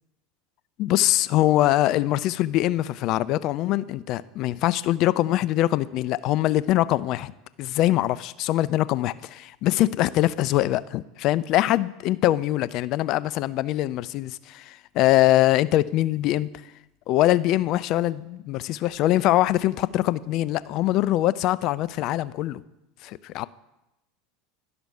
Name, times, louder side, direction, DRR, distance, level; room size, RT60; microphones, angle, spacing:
voice 1, 0.8-7.3 7.6-16.5 17.1-22.6 23.0-23.5, left 15 dB, 45° left, 18 dB, 0.3 m, -23 dB
11.0 x 5.9 x 5.6 m, 0.94 s
figure-of-eight pair, 75°, 0 cm